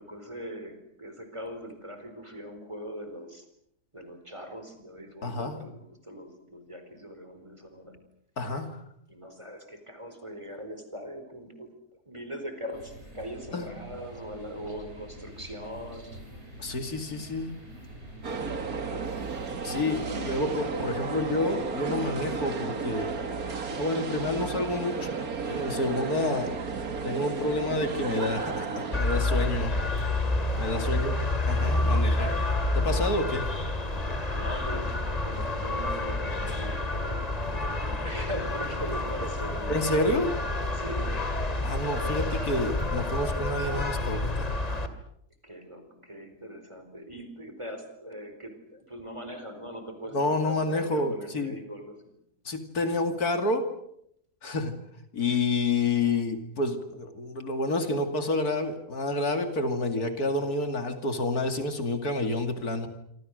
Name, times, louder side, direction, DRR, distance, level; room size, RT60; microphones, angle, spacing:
voice 1, 0.0-3.5 3.9-8.0 9.1-11.7 12.1-16.2 25.8-26.2 30.5-31.0 31.7-32.0 34.1-39.8 40.7-41.3 41.8-42.3 45.4-52.2 55.2-55.4, equal, 20° right, 7 dB, 4.4 m, -41 dB
voice 2, 5.2-5.7 8.4-8.8 13.5-13.7 16.6-17.6 19.6-23.1 23.8-25.1 25.4-26.6 27.0-29.8 30.6-31.2 31.5-32.4 32.7-33.5 39.7-40.3 41.6-44.6 50.1-51.6 52.4-53.7 54.4-54.8 55.1-62.9, left 2 dB, 75° left, 7 dB, 3.0 m, -29 dB
sound 1, 12.7-19.9, right 1 dB, 45° right, 6.6 m, -46 dB
sound 2, 18.2-29.0, right 5 dB, 70° right, 2.5 m, -33 dB
sound 3, 28.9-44.9, left 2 dB, 25° left, 2.3 m, -29 dB
27.5 x 26.0 x 6.6 m, 0.73 s
omnidirectional pair, 1.6 m